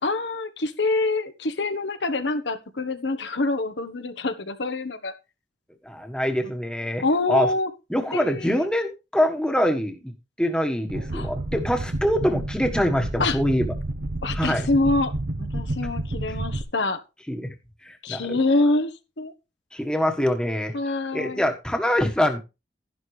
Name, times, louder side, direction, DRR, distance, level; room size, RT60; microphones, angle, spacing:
voice 1, 0.0-5.1 7.0-7.7 8.1-8.7 11.1-11.3 13.2-13.4 14.2-15.1 15.4-17.0 18.0-18.9 19.2-19.3 20.7-21.4, left 2 dB, 75° left, 9 dB, 1.2 m, -25 dB
voice 2, 5.8-7.5 7.9-13.7 14.3-14.7 16.3-16.4 17.3-17.5 17.8-18.4 19.7-20.7 21.1-22.4, equal, 5° left, 4 dB, 1.4 m, -24 dB
sound 1, 10.9-16.6, right 1 dB, 65° right, 1.0 m, -30 dB
12.0 x 11.0 x 3.3 m, 0.28 s
head